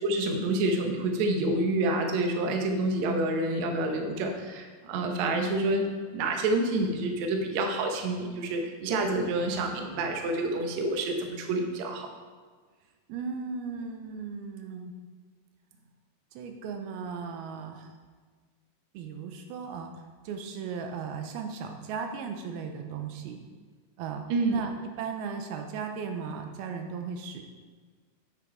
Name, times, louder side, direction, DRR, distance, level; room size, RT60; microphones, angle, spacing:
voice 1, 0.0-5.8 6.1-12.1 24.3-24.6, right 2 dB, 70° right, 3 dB, 1.7 m, -28 dB
voice 2, 13.1-15.0 16.3-17.9 18.9-23.4 24.0-27.4, right 5 dB, 90° right, 5 dB, 2.6 m, -37 dB
9.0 x 6.0 x 4.5 m, 1.5 s
omnidirectional pair, 4.4 m